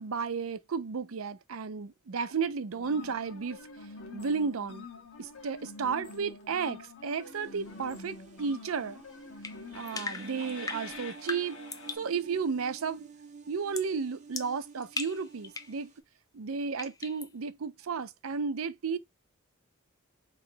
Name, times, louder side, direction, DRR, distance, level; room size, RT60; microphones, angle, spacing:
voice 1, 0.0-3.6 4.1-4.9 5.2-9.0 9.7-11.6 11.9-13.1 13.5-15.9 16.3-19.0, right 5 dB, 90° right, 0.5 m, -33 dB
sound 1, 2.7-12.0, left 3 dB, 75° left, 1.2 m, -46 dB
sound 2, 7.2-16.0, right 4 dB, 35° right, 0.7 m, -51 dB
sound 3, 9.4-12.1 13.7-14.0 14.3-15.8 16.8-17.3, left 4 dB, 15° left, 0.5 m, -39 dB
3.9 x 3.1 x 2.7 m
head